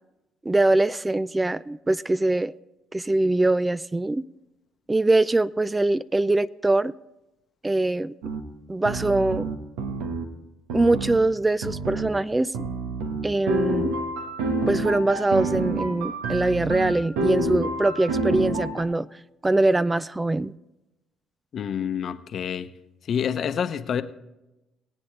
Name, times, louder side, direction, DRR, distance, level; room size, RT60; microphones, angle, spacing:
voice 1, 0.5-2.5 2.9-4.2 4.9-6.9 7.6-8.1 8.7-9.5 10.7-12.5 13.2-13.9 14.7-19.1 19.4-20.5, right 2 dB, 15° right, 0.3 m, -23 dB
sound 1, 8.2-8.4 8.8-10.2 10.7-11.2 11.6-12.1 12.5-18.8, right 2 dB, 90° right, 1.3 m, -28 dB
voice 2, 21.5-22.7 23.1-24.0, left 8 dB, 55° left, 0.9 m, -27 dB
21.5 x 8.6 x 3.3 m
supercardioid pair, 70°, 0 cm